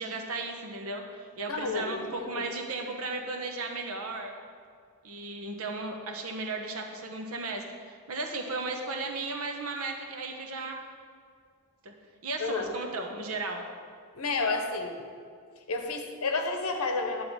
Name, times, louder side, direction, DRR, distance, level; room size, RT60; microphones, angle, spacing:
voice 1, 0.0-4.3 5.0-10.8 11.8-11.9 12.2-13.7, right 3 dB, 75° right, 3 dB, 1.1 m, -35 dB
voice 2, 1.5-2.5 12.4-12.7 14.1-15.0 15.6-17.2, left 3 dB, 80° left, 5 dB, 0.9 m, -31 dB
9.7 x 3.8 x 7.2 m, 2.1 s
head